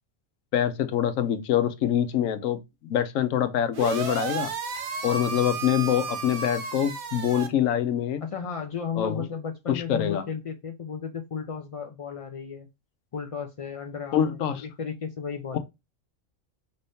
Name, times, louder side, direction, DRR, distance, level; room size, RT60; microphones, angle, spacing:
voice 1, 0.5-4.5 5.0-8.2 9.0-9.2 9.7-10.2 14.1-14.6 15.5-15.6, left 10 dB, 80° left, 1.0 m, -25 dB
sound 1, 3.7-7.5, right 5 dB, 60° right, 1.1 m, -33 dB
voice 2, 8.2-12.7 13.1-15.6, left 6 dB, 60° left, 0.3 m, -34 dB
5.3 x 2.7 x 3.4 m
omnidirectional pair, 1.4 m